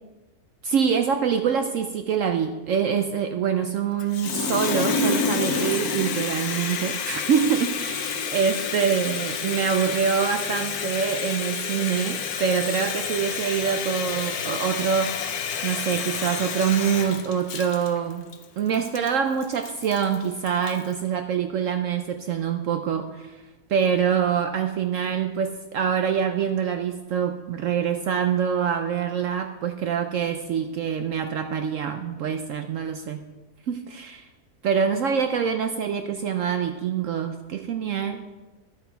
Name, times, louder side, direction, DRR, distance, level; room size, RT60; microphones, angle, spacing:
voice 1, 0.6-15.2 15.6-18.2 18.6-23.4 23.7-33.2 33.7-34.3 34.6-38.3, right 7 dB, 65° right, 6 dB, 0.9 m, -25 dB
Water tap faucet, 4.0-20.9, left 6 dB, 70° left, 1.3 m, -29 dB
11.5 x 7.8 x 4.6 m, 1.2 s
omnidirectional pair, 1.6 m